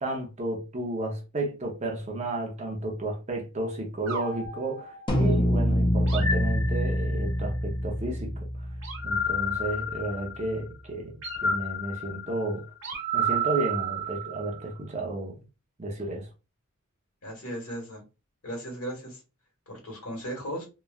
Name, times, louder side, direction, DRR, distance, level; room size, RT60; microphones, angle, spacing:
voice 1, 0.0-8.3 9.0-12.7 13.1-15.4 15.8-16.3, right 2 dB, 30° right, 0.6 m, -32 dB
sound 1, 4.1-5.4 6.1-7.3 8.8-10.6 11.2-14.7, right 1 dB, 60° right, 1.1 m, -31 dB
sound 2, 5.1-9.7, equal, 20° left, 0.5 m, -26 dB
voice 2, 17.2-18.0 18.4-19.2 19.7-20.7, right 1 dB, 75° left, 1.5 m, -36 dB
3.1 x 2.2 x 2.3 m
head